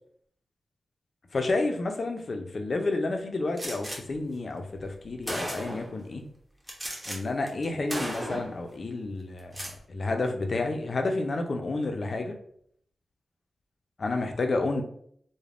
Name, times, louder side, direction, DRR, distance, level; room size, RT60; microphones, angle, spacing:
voice 1, 1.3-6.2 7.1-12.4 14.0-14.8, left 2 dB, 50° left, 4 dB, 0.4 m, -30 dB
Gunshot gunfire, 3.6-4.0 4.8-4.9 5.3-5.9 6.7-7.2 7.5-7.6 7.9-8.6 9.4-9.8, right 1 dB, 15° right, 0.7 m, -35 dB
3.3 x 2.1 x 2.4 m, 0.65 s
wide cardioid pair, 90°, 0 cm